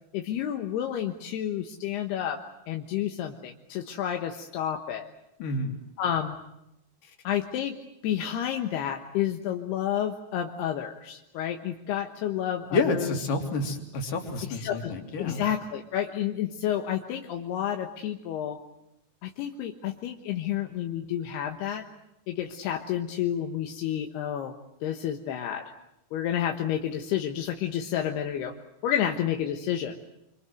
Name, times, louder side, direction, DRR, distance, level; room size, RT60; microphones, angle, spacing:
voice 1, 0.1-2.4 2.7-5.1 6.0-6.4 7.2-7.8 8.0-13.2 14.5-14.9 15.2-18.6 19.2-21.9 22.3-24.6 24.8-25.6 26.1-28.5 28.8-30.1, left 10 dB, 80° left, 3 dB, 3.3 m, -30 dB
voice 2, 5.4-5.7 12.7-15.4, left 3 dB, 60° left, 3 dB, 4.6 m, -29 dB
26.5 x 26.0 x 7.8 m, 0.86 s
omnidirectional pair, 4.6 m